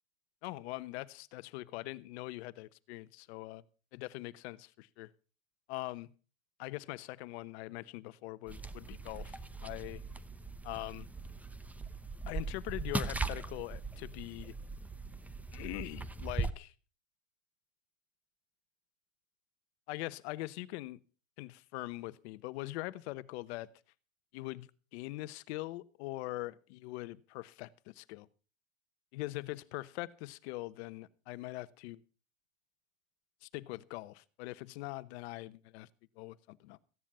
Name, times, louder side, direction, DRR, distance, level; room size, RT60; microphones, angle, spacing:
voice 1, 0.4-3.6 3.9-5.1 5.7-6.1 6.6-10.0 10.6-11.1 12.3-14.5 15.5-16.7 19.9-21.0 21.4-23.7 24.3-28.3 29.1-32.0 33.4-35.9 36.2-36.8, left 19 dB, 55° left, 1.0 m, -42 dB
sound 1, 8.5-16.5, right 3 dB, 5° right, 0.7 m, -40 dB
15.5 x 10.0 x 5.5 m
hypercardioid pair, 125°, 39 cm